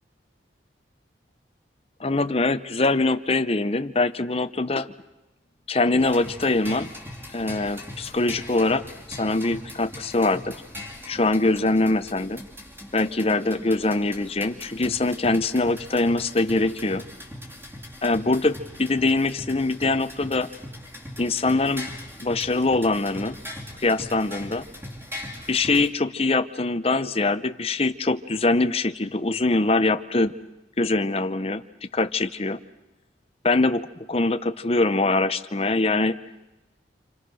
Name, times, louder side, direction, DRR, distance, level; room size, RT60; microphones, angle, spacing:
voice 1, 2.0-4.9 5.7-6.9 7.3-10.5 11.1-12.4 12.9-17.0 18.0-20.5 21.2-21.9 22.2-23.4 23.8-24.6 25.5-30.3 30.8-32.6 33.4-36.2, left 2 dB, 30° left, 10 dB, 0.8 m, -23 dB
sound 1, 6.0-25.9, left 1 dB, 15° right, 2.7 m, -40 dB
28.0 x 27.5 x 6.3 m, 1.0 s
head